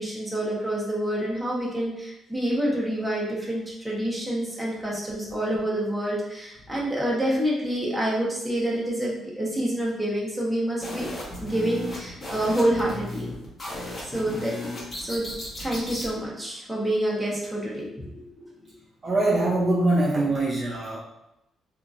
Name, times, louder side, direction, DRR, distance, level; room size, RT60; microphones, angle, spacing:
voice 1, 0.0-11.1 11.4-13.3 14.1-14.6 15.0-15.3 15.6-18.5, right 1 dB, 5° right, -6 dB, 1.0 m, -27 dB
sound 1, 10.8-16.1, left 1 dB, 30° left, 1.1 m, -35 dB
voice 2, 19.0-21.0, right 2 dB, 35° right, -4 dB, 0.6 m, -23 dB
2.7 x 2.5 x 2.5 m, 0.90 s
cardioid pair, 90°, 0 cm